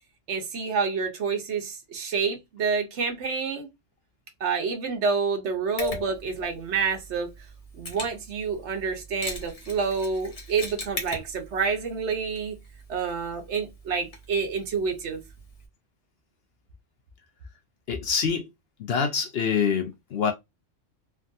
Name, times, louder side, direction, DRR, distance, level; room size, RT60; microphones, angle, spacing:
voice 1, 0.3-3.7 4.4-7.3 7.7-12.6 12.9-15.2, right 5 dB, 65° right, 1.1 m, -28 dB
Mechanisms, 5.8-15.7, left 1 dB, 35° left, 0.8 m, -41 dB
voice 2, 17.9-18.5 18.8-20.3, left 6 dB, 60° left, 0.7 m, -26 dB
3.4 x 2.3 x 2.6 m
omnidirectional pair, 1.3 m